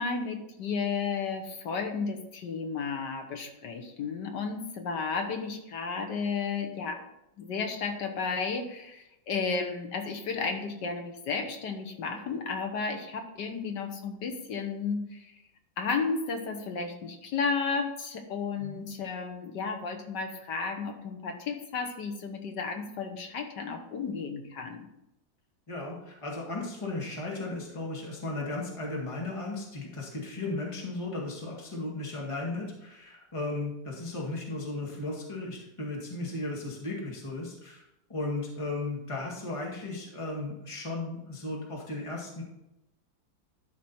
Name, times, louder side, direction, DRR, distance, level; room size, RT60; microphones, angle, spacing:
voice 1, 0.0-7.1 7.4-15.3 15.8-24.9, left 5 dB, 65° left, 5 dB, 1.6 m, -33 dB
voice 2, 25.7-37.8 38.1-42.4, left 2 dB, 15° left, -2 dB, 1.8 m, -35 dB
12.0 x 5.1 x 4.3 m, 0.87 s
omnidirectional pair, 2.1 m